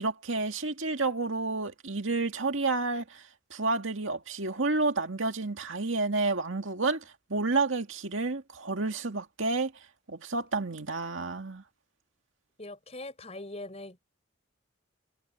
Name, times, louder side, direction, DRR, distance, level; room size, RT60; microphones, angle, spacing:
voice 1, 0.0-3.2 3.5-7.0 7.3-9.7 10.1-11.6, right 3 dB, 70° right, 2.1 m, -30 dB
voice 2, 12.6-14.0, left 2 dB, 30° left, 5.6 m, -41 dB
head